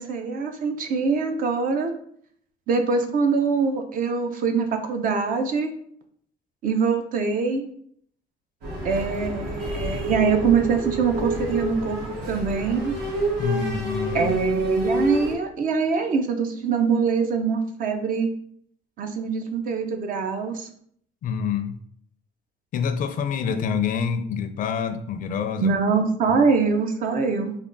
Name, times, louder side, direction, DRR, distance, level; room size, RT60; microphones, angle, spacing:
voice 1, 0.0-1.9 2.7-5.7 6.6-7.6 8.8-12.0 12.3-13.0 14.1-18.3 19.0-20.7 25.6-27.6, right 5 dB, 55° right, 6 dB, 0.6 m, -23 dB
sound 1, 8.6-15.3, equal, 75° right, 1.3 m, -28 dB
voice 2, 13.4-14.3 21.2-21.8 22.7-25.8 26.3-26.4, left 6 dB, 55° left, 8 dB, 0.4 m, -27 dB
3.5 x 2.2 x 3.8 m, 0.64 s
cardioid pair, 110°, 17 cm